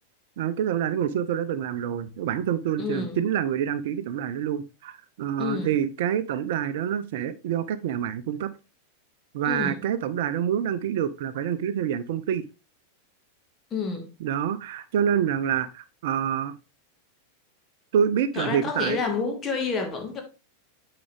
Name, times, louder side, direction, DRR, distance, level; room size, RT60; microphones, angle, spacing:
voice 1, 0.4-8.5 9.3-12.4 14.2-16.6 17.9-19.0, right 9 dB, 55° right, 0.5 m, -27 dB
voice 2, 2.8-3.2 5.4-5.7 9.5-9.8 13.7-14.1 18.3-20.2, left 4 dB, 25° left, 1.9 m, -29 dB
8.6 x 4.8 x 3.4 m
figure-of-eight pair, 90°, 0 cm